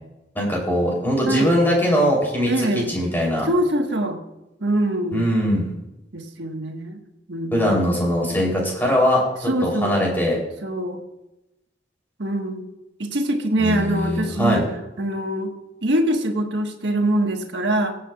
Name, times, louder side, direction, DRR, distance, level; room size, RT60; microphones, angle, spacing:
voice 1, 0.3-3.5 5.1-5.7 7.5-10.4 13.6-14.6, equal, 10° left, -2 dB, 3.2 m, -21 dB
voice 2, 2.5-2.9 3.4-4.2 4.6-5.4 6.1-7.0 7.3-7.9 9.5-10.0 10.6-11.0 12.2-12.7 13.0-14.7 15.0-15.5 15.8-17.9, right 1 dB, 80° right, 3 dB, 1.4 m, -23 dB
21.5 x 8.3 x 2.3 m, 0.95 s
head